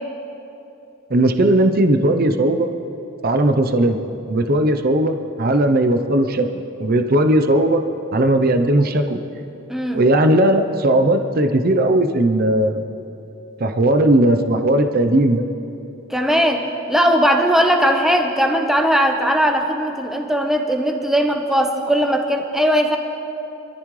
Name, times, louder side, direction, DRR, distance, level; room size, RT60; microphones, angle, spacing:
voice 1, 1.1-2.7 3.2-4.0 4.3-7.8 8.1-9.2 9.9-12.8 13.6-15.4, right 1 dB, 50° right, 6 dB, 0.7 m, -17 dB
voice 2, 9.7-10.0 16.1-23.0, equal, ahead, 2 dB, 1.1 m, -18 dB
26.0 x 14.0 x 3.2 m, 2.8 s
head